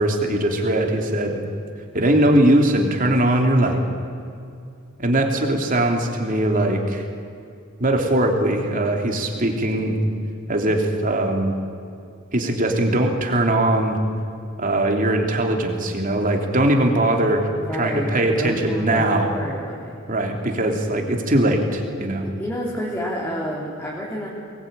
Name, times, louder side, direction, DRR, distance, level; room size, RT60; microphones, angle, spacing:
voice 1, 0.0-1.4 1.9-3.8 5.0-7.0 7.8-10.0 10.5-11.5 12.3-14.0 14.6-19.4 20.1-22.2, right 1 dB, 40° right, 3 dB, 3.1 m, -20 dB
voice 2, 17.5-20.0 22.2-24.3, equal, 10° left, -5 dB, 3.3 m, -29 dB
24.5 x 20.5 x 9.1 m, 2.5 s
head